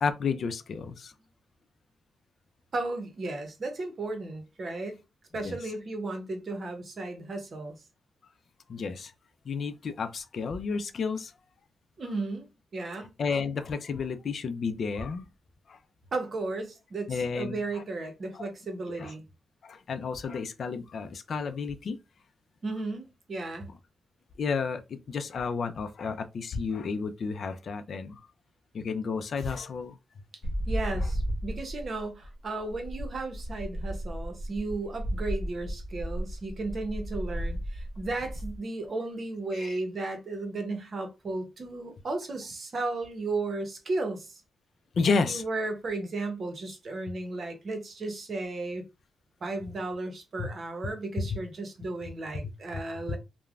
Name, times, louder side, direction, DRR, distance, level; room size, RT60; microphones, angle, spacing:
voice 1, 0.0-1.1 5.4-5.6 8.7-9.1 9.5-11.3 13.2-15.3 15.7-15.8 17.1-17.8 18.3-18.5 18.9-19.1 19.6-22.0 24.4-28.2 28.7-30.0 39.5-39.8 44.9-45.4 50.4-50.5 51.2-51.4 52.7-52.8 53.1-53.2, left 5 dB, 60° left, 0.4 m, -31 dB
voice 2, 2.7-5.0 5.3-7.8 12.0-13.1 16.1-19.2 22.6-23.7 30.7-44.4 45.1-48.8 49.4-53.2, right 2 dB, 50° right, 0.8 m, -34 dB
sound 1, 30.4-38.6, equal, 45° left, 0.9 m, -34 dB
3.1 x 2.1 x 2.4 m
cardioid pair, 85°, 0 cm